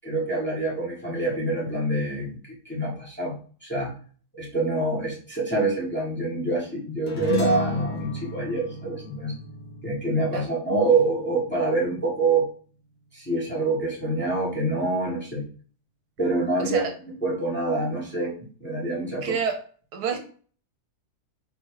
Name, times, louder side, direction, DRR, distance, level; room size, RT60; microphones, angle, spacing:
voice 1, 0.0-3.3 3.6-3.9 4.3-9.3 9.8-12.5 13.1-15.4 16.2-16.8 17.2-19.3, right 2 dB, 5° left, -5 dB, 1.3 m, -26 dB
sound 1, 7.1-11.7, left 3 dB, 40° left, 0.7 m, -33 dB
voice 2, 16.6-16.9 19.2-19.6 19.9-20.2, right 6 dB, 75° right, 5 dB, 1.2 m, -28 dB
3.5 x 3.0 x 4.6 m, 0.44 s
omnidirectional pair, 1.7 m